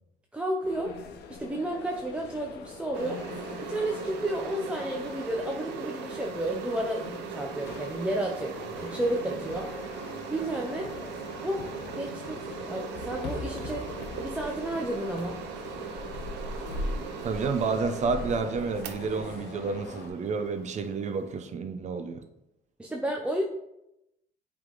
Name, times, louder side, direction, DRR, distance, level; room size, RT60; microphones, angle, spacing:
voice 1, 0.3-1.0 1.3-3.2 3.6-9.7 10.3-10.9 11.4-12.4 12.7-13.9 14.2-15.4 22.8-23.4, right 1 dB, 5° right, 0 dB, 0.6 m, -32 dB
sound 1, 0.6-20.1, left 3 dB, 80° left, 0.9 m, -41 dB
sound 2, 2.9-21.4, right 7 dB, 85° right, 0.8 m, -40 dB
voice 2, 17.2-22.2, right 4 dB, 45° right, 8 dB, 0.7 m, -30 dB
7.8 x 3.6 x 3.8 m, 0.86 s
cardioid pair, 110°, 17 cm